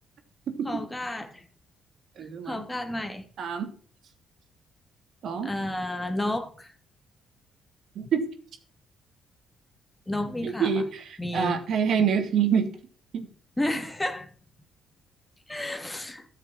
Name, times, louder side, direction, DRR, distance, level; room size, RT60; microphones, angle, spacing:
voice 1, 0.6-1.5 2.4-3.3 5.4-6.7 10.1-10.8 11.2-11.6 13.6-14.3 15.5-16.3, left 1 dB, 10° left, 2.6 m, -31 dB
voice 2, 2.2-2.6 3.4-3.7 5.2-5.5 7.9-8.3 10.4-12.7 13.1-13.3, right 7 dB, 65° right, 3.0 m, -26 dB
13.5 x 7.4 x 6.2 m
cardioid pair, 90°, 0 cm